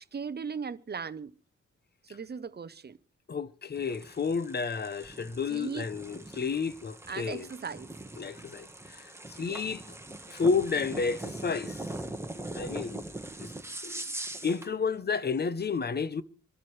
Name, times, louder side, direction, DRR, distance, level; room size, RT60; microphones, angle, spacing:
voice 1, 0.1-1.3 2.0-3.0 5.5-5.8 7.1-7.9 9.4-9.6, right 6 dB, 35° right, 0.6 m, -38 dB
voice 2, 3.3-7.5 8.2-9.8 10.3-11.8 12.3-13.0 13.4-13.5 13.8-14.0 14.4-16.2, left 5 dB, 35° left, 0.7 m, -31 dB
sound 1, 3.7-14.7, right 2 dB, 10° right, 1.2 m, -41 dB
27.0 x 12.0 x 3.2 m
wide cardioid pair, 145°, 29 cm